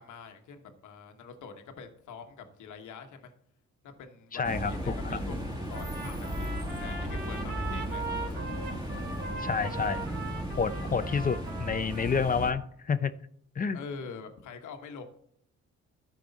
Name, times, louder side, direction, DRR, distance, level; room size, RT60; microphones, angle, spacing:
voice 1, 0.0-3.3 3.8-6.5 6.8-8.1 13.7-15.0, left 5 dB, 80° left, 6 dB, 1.2 m, -45 dB
voice 2, 4.3-5.2 9.4-10.1 10.6-13.1 13.6-13.8, left 5 dB, 30° left, 12 dB, 0.6 m, -29 dB
sound 1, 4.4-12.5, equal, 15° right, 1.6 m, -35 dB
Trumpet, 5.7-12.7, right 3 dB, 30° right, 3.1 m, -40 dB
13.0 x 4.8 x 4.0 m, 0.67 s
cardioid pair, 90°, 30 cm